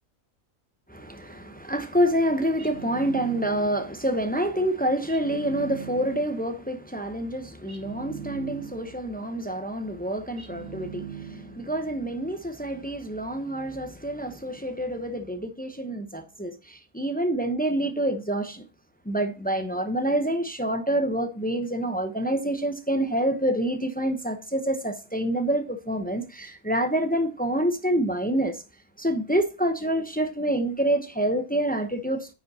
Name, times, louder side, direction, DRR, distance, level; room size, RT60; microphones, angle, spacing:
voice 1, 0.9-18.7 19.1-28.6 29.0-32.3, right 1 dB, 10° left, 0.5 m, -27 dB
sound 1, 2.6-3.9 5.1-6.4 7.7-9.0 10.4-11.7, right 6 dB, 50° right, 2.2 m, -40 dB
9.6 x 5.2 x 4.1 m
omnidirectional pair, 1.5 m